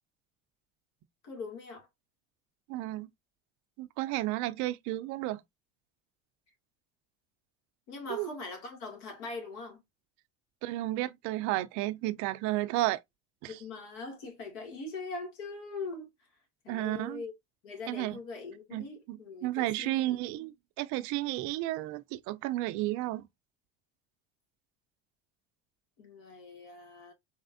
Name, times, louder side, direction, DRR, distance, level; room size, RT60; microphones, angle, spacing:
voice 1, 1.2-1.9 7.9-9.8 13.5-16.1 16.6-17.3 17.6-20.4 26.0-27.1, left 3 dB, 80° left, 2.1 m, -42 dB
voice 2, 2.7-3.1 3.8-5.4 8.1-8.3 10.6-13.0 13.4-13.6 16.7-17.2 17.9-18.2 18.7-23.3, right 17 dB, 65° right, 0.5 m, -32 dB
4.2 x 3.2 x 2.5 m
supercardioid pair, 110°, 32 cm